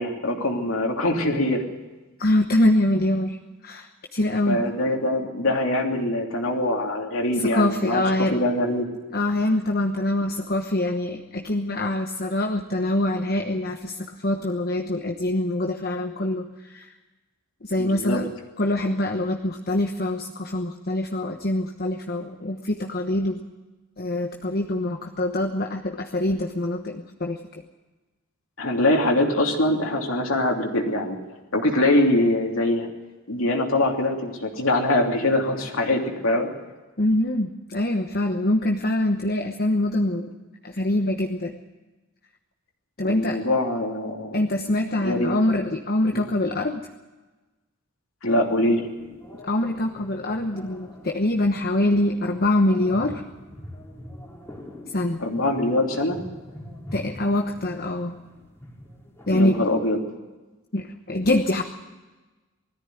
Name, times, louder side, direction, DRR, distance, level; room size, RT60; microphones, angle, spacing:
voice 1, 0.0-1.6 4.5-8.9 17.8-18.2 28.6-31.2 31.5-32.9 33.3-36.5 43.1-44.4 45.0-45.4 46.1-46.2 48.2-48.9 55.2-56.2 59.3-60.0, left 1 dB, 70° left, 1 dB, 3.1 m, -23 dB
voice 2, 2.2-3.4 3.6-3.9 4.1-4.6 7.5-8.3 9.1-16.9 17.6-18.3 18.6-23.4 24.0-27.4 37.0-40.3 40.6-41.5 43.0-43.4 44.3-46.8 49.5-53.2 54.9-55.2 56.9-58.1 59.3-59.6 60.7-61.6, left 1 dB, 45° left, 4 dB, 1.2 m, -24 dB
sound 1, 48.3-59.7, equal, 15° left, 3.3 m, -44 dB
20.0 x 14.0 x 9.3 m, 1.2 s
head